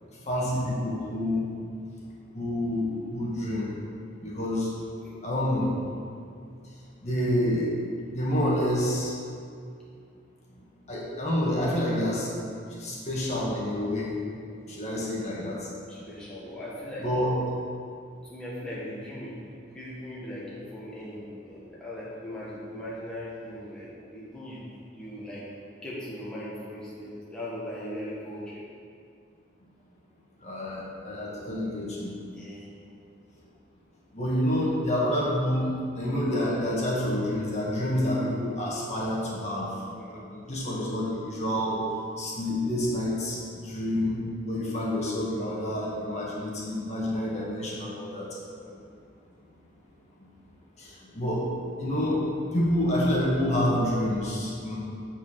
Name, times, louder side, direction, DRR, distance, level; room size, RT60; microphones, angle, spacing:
voice 1, 0.3-1.5 2.3-3.7 4.2-4.7 5.2-5.7 7.0-7.7 8.1-9.1 10.9-12.3 12.7-14.1 14.7-15.7 17.0-17.6 30.4-32.1 34.1-39.7 40.1-41.8 42.2-48.3 50.8-54.8, left 1 dB, 35° left, -5 dB, 1.7 m, -28 dB
voice 2, 15.9-17.1 18.2-25.5 25.8-28.6 32.3-32.7 39.9-40.3 48.6-48.9, left 1 dB, 5° left, -8 dB, 1.6 m, -39 dB
6.7 x 5.9 x 7.4 m, 2.3 s
head